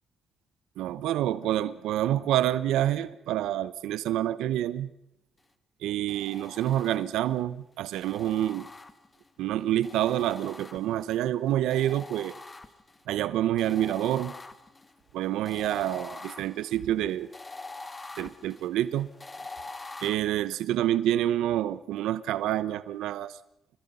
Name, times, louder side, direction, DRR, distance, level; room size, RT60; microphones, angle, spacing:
voice 1, 0.8-4.9 5.8-8.7 9.4-12.3 13.1-14.3 15.1-17.3 18.2-19.1 20.0-23.4, right 12 dB, 90° right, 15 dB, 0.9 m, -27 dB
sound 1, 6.1-7.3 8.0-9.3 9.8-11.2 11.7-13.0 13.6-20.1, left 3 dB, 20° left, 1.8 m, -44 dB
30.0 x 20.5 x 5.6 m, 0.83 s
cardioid pair, 90°, 0 cm